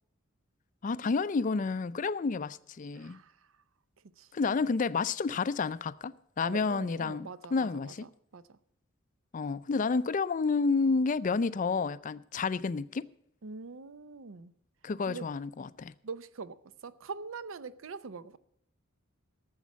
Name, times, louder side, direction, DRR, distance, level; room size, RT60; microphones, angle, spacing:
voice 1, 0.8-3.2 4.3-8.1 9.3-13.1 14.8-15.9, left 4 dB, 40° left, 0.4 m, -30 dB
voice 2, 3.0-3.4 4.2-4.3 6.4-7.9 8.3-8.6 13.4-14.5 15.1-15.3 16.0-18.4, right 4 dB, 65° right, 0.6 m, -43 dB
13.0 x 7.2 x 7.3 m
head